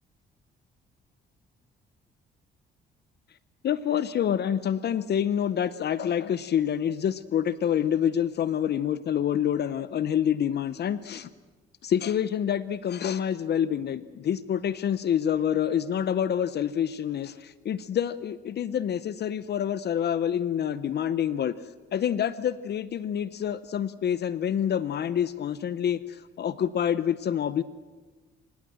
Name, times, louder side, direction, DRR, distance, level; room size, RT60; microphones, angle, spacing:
voice 1, 3.6-11.3 11.8-21.5 21.9-27.6, left 9 dB, 55° left, 15 dB, 0.8 m, -27 dB
27.5 x 17.0 x 7.7 m, 1.3 s
cardioid pair, 90°, 20 cm